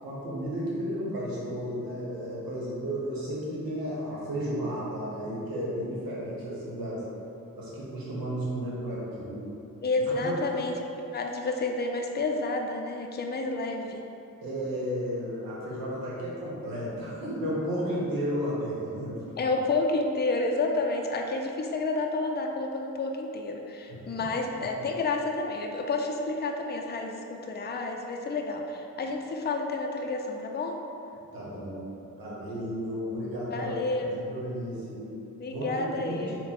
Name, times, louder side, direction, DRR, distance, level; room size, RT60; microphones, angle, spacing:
voice 1, 0.0-7.0 7.6-9.4 10.2-10.6 14.4-19.2 23.9-24.1 31.3-31.8 32.2-33.8 34.2-35.1 35.5-36.2, equal, 90° right, -6 dB, 0.9 m, -33 dB
voice 2, 9.8-10.8 11.1-14.0 19.4-30.8 33.5-34.3 35.4-36.4, left 3 dB, 30° left, 2 dB, 0.4 m, -30 dB
3.7 x 2.2 x 4.2 m, 2.8 s
cardioid pair, 45°, 34 cm